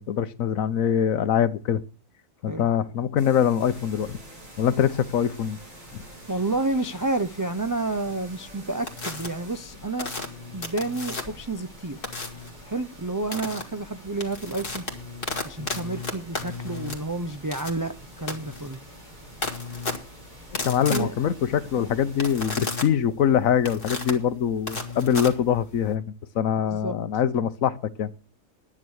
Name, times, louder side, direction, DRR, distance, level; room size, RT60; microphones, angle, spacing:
voice 1, 0.0-1.8 2.4-4.2 4.6-5.6 5.9-6.0 20.5-28.1, left 8 dB, 80° left, 1.3 m, -24 dB
sound 1, 3.2-9.6, right 1 dB, 70° right, 4.6 m, -50 dB
sound 2, 3.6-22.5, equal, 85° right, 6.6 m, -47 dB
voice 2, 6.3-10.1 10.5-12.0 12.6-14.8 15.4-18.8 20.9-21.1 26.7-27.0, right 2 dB, 30° right, 0.3 m, -30 dB
sound 3, 8.9-9.3 10.0-11.5 12.0-12.5 13.3-13.6 14.0-25.9, left 3 dB, 40° left, 2.3 m, -34 dB
10.5 x 9.9 x 6.4 m
omnidirectional pair, 1.4 m